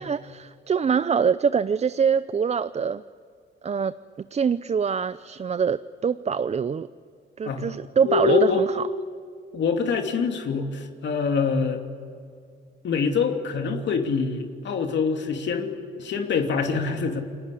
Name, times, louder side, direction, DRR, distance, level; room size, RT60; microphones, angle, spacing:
voice 1, 0.0-3.0 3.6-3.9 4.3-6.9 7.4-8.8, right 6 dB, 35° right, 14 dB, 0.6 m, -24 dB
voice 2, 7.4-7.7 8.0-8.7 9.5-11.8 12.8-15.7 16.0-17.2, left 5 dB, 65° left, 4 dB, 2.8 m, -25 dB
29.5 x 20.5 x 8.5 m, 2.3 s
cardioid pair, 90°, 20 cm